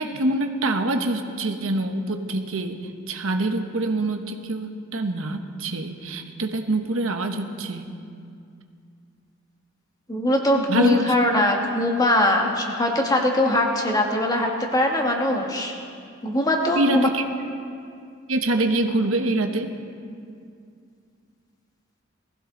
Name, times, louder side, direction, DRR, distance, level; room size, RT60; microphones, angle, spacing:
voice 1, 0.0-7.9 10.7-11.0 16.7-17.2 18.3-19.7, right 2 dB, 85° right, 5 dB, 1.1 m, -25 dB
voice 2, 10.1-15.7 16.2-17.1, left 1 dB, 20° left, 1 dB, 1.6 m, -21 dB
19.5 x 15.5 x 3.9 m, 2.4 s
head